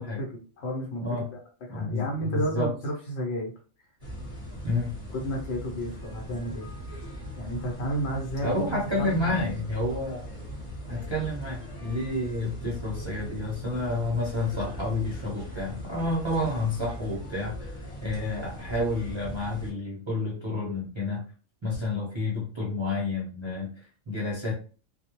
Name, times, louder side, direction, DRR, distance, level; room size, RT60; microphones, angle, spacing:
voice 1, 0.0-1.4 1.7-3.5 5.1-6.7 7.4-9.5, right 1 dB, 60° left, 0 dB, 0.9 m, -32 dB
voice 2, 1.0-1.4 1.7-2.7 4.6-5.0 8.4-10.2 10.9-21.2 21.6-24.5, left 2 dB, 35° right, -5 dB, 0.4 m, -30 dB
sound 1, 4.0-19.7, equal, 35° left, 0.9 m, -40 dB
2.3 x 2.0 x 2.9 m, 0.38 s
omnidirectional pair, 1.3 m